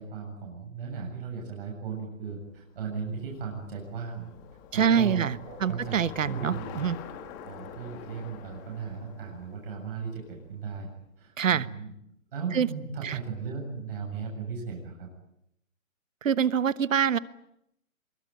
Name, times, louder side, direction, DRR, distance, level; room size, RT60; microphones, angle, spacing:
voice 1, 0.0-4.3 4.7-6.8 7.4-10.9 11.2-11.9 12.3-15.1, right 5 dB, 45° right, 0 dB, 7.6 m, -37 dB
Bicycle, 2.4-10.8, left 7 dB, 15° left, 1.5 m, -46 dB
voice 2, 4.7-7.0 11.4-11.7 12.5-12.7 13.0-13.2 16.2-17.2, right 8 dB, 70° right, 16 dB, 1.3 m, -25 dB
24.5 x 23.0 x 9.3 m, 0.79 s
hypercardioid pair, 165°, 41 cm